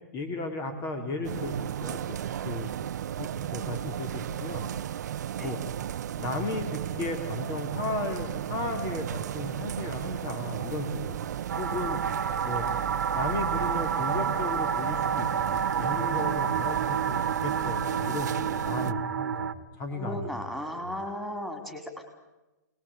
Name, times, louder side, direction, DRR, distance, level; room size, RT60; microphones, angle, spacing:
voice 1, 0.1-1.5 1.8-2.9 3.2-4.7 5.4-5.6 6.2-11.2 11.6-12.0 12.4-12.7 13.1-19.5 19.8-20.3 20.8-20.9, left 2 dB, 30° left, 5 dB, 3.2 m, -35 dB
sound 1, 1.2-18.9, right 10 dB, 65° right, 0.8 m, -34 dB
sound 2, 11.5-19.5, right 7 dB, 85° right, 1.6 m, -29 dB
voice 2, 19.9-22.0, left 1 dB, ahead, 3 dB, 4.3 m, -36 dB
28.0 x 20.0 x 8.6 m, 1.1 s
hypercardioid pair, 130°, 10 cm